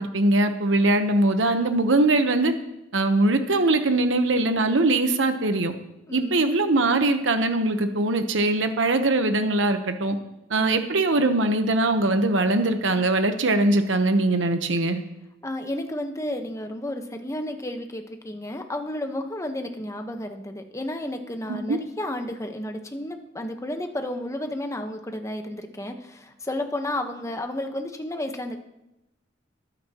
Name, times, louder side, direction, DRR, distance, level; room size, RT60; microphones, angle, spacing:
voice 1, 0.0-2.5 2.9-5.7 6.1-10.2 10.5-15.0 21.5-21.8, right 2 dB, 80° right, 7 dB, 1.0 m, -21 dB
voice 2, 6.1-6.4 10.6-10.9 15.4-28.6, left 1 dB, 15° left, 5 dB, 1.1 m, -32 dB
21.0 x 9.4 x 3.0 m, 0.89 s
head